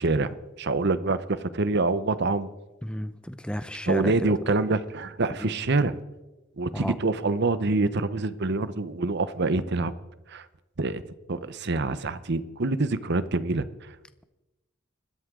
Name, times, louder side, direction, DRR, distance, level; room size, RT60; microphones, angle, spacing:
voice 1, 0.0-2.5 3.9-6.0 6.6-9.9 10.3-10.4 10.8-11.0 11.3-13.7, right 3 dB, 55° right, 14 dB, 0.9 m, -26 dB
voice 2, 2.8-4.3 5.4-5.5 6.7-6.9, equal, 5° left, 11 dB, 0.7 m, -32 dB
25.0 x 13.0 x 3.8 m, 1.0 s
head